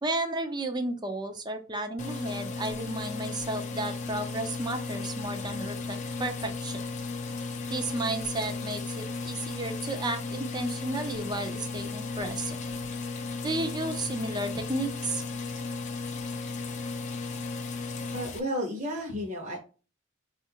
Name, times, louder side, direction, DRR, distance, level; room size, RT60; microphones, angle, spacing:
voice 1, 0.0-6.8 7.7-12.7 13.4-15.2, right 2 dB, 20° right, 6 dB, 0.6 m, -33 dB
sound 1, 2.0-18.4, left 4 dB, 35° left, 0.5 m, -35 dB
voice 2, 18.1-19.6, equal, 40° right, -1 dB, 1.0 m, -32 dB
5.0 x 2.5 x 2.8 m, 0.34 s
head